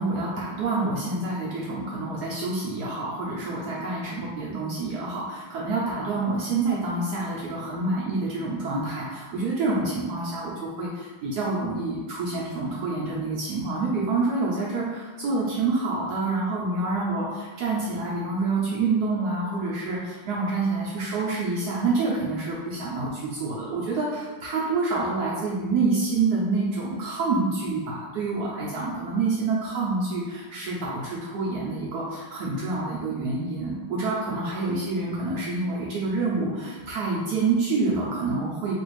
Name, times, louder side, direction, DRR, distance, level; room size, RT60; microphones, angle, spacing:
voice 1, 0.0-38.7, right 3 dB, 80° right, -5 dB, 0.9 m, -27 dB
3.3 x 2.4 x 3.1 m, 1.3 s
omnidirectional pair, 2.3 m